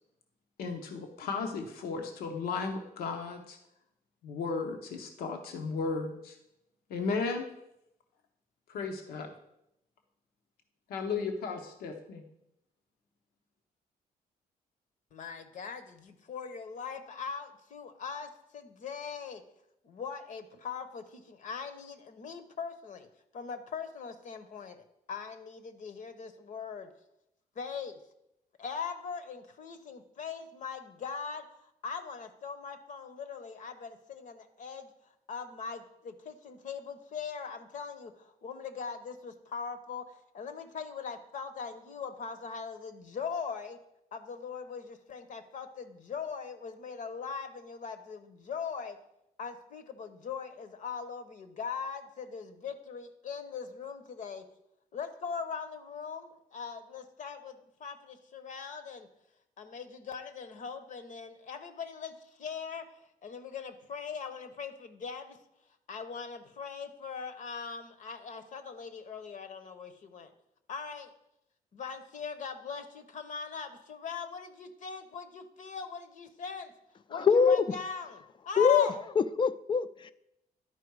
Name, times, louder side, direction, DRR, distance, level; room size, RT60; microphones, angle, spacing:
voice 1, 0.6-3.6 4.2-6.4 6.9-7.5 8.7-9.3 10.9-12.2, left 4 dB, 85° left, 4 dB, 1.0 m, -35 dB
voice 2, 15.1-19.4 19.8-23.1 23.3-26.9 27.6-28.0 28.6-31.4 31.8-34.9 35.3-43.8 44.1-49.0 49.4-54.4 54.9-59.1 59.6-62.9 63.2-65.4 65.9-70.3 70.7-71.1 71.7-76.7 77.1-79.0, left 6 dB, 55° left, 10 dB, 0.9 m, -40 dB
voice 3, 77.2-77.6 78.6-78.9 79.2-80.1, left 6 dB, 30° left, 15 dB, 0.4 m, -24 dB
11.0 x 4.6 x 4.7 m, 0.82 s
cardioid pair, 100°, 15 cm